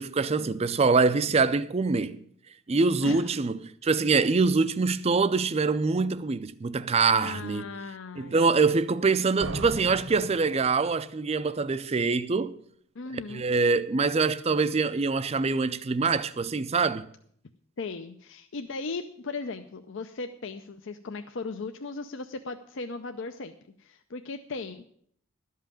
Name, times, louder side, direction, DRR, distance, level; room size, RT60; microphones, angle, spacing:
voice 1, 0.0-2.2 2.7-7.7 8.2-12.6 13.3-17.1, right 4 dB, 30° right, 0.4 m, -24 dB
voice 2, 7.2-8.4 13.0-13.4 17.8-23.5 23.8-24.8, left 3 dB, 60° left, 0.5 m, -37 dB
sound 1, 9.4-11.2, right 2 dB, 65° right, 1.0 m, -37 dB
12.0 x 5.6 x 8.8 m
head